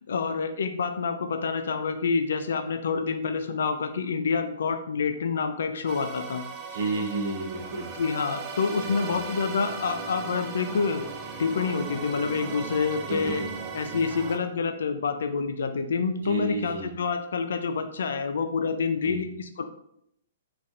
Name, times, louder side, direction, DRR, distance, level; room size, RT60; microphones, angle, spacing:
voice 1, 0.1-6.4 7.9-11.0 11.4-13.4 13.7-19.6, left 5 dB, 75° left, 7 dB, 0.4 m, -27 dB
sound 1, 5.9-14.4, right 5 dB, 30° right, 0.4 m, -37 dB
voice 2, 6.7-7.9 8.8-9.2 13.1-13.5 16.2-16.9 19.0-19.2, right 2 dB, 75° right, -2 dB, 1.0 m, -31 dB
3.1 x 2.4 x 2.7 m, 0.73 s
hypercardioid pair, 135°, 0 cm